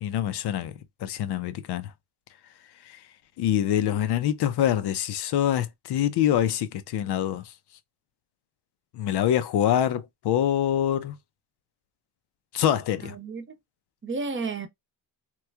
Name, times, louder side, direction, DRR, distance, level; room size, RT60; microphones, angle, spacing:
voice 1, 0.0-0.7 1.0-1.9 3.4-7.4 8.9-11.2 12.5-13.1, left 10 dB, 70° left, 0.6 m, -25 dB
voice 2, 13.0-13.5 14.0-14.7, right 4 dB, 30° right, 0.7 m, -32 dB
3.0 x 2.3 x 3.3 m
cardioid pair, 115°, 42 cm